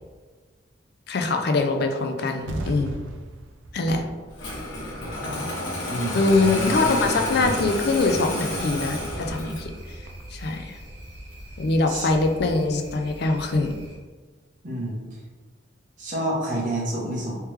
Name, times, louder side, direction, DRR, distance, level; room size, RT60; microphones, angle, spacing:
voice 1, 1.1-3.0 3.7-4.0 6.1-9.7 10.3-10.8 11.6-13.8, left 3 dB, 55° left, 5 dB, 0.4 m, -23 dB
sound 1, 2.3-10.3, right 2 dB, 85° right, 0.4 m, -40 dB
Engine starting, 4.4-9.8, left 1 dB, 80° left, 1.0 m, -30 dB
voice 2, 5.9-6.2 11.9-12.1 14.6-15.0 16.0-17.4, right 1 dB, 45° right, -4 dB, 1.0 m, -28 dB
sound 2, 6.2-14.0, equal, 65° right, 1.2 m, -42 dB
3.3 x 3.2 x 3.1 m, 1.4 s
head